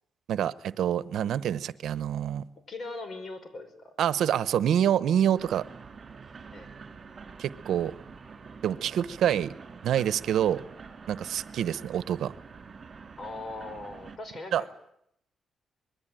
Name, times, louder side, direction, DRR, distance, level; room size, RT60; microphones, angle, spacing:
voice 1, 0.3-2.4 4.0-5.6 7.4-7.9 8.6-9.5 9.8-10.6 11.1-12.3 14.5-14.6, right 10 dB, 80° right, 0.9 m, -26 dB
voice 2, 2.7-3.9 6.5-6.7 13.2-14.7, left 2 dB, 45° left, 5.4 m, -40 dB
sound 1, 5.4-14.2, right 5 dB, 40° right, 4.0 m, -47 dB
25.5 x 21.5 x 9.1 m
cardioid pair, 100°, 0 cm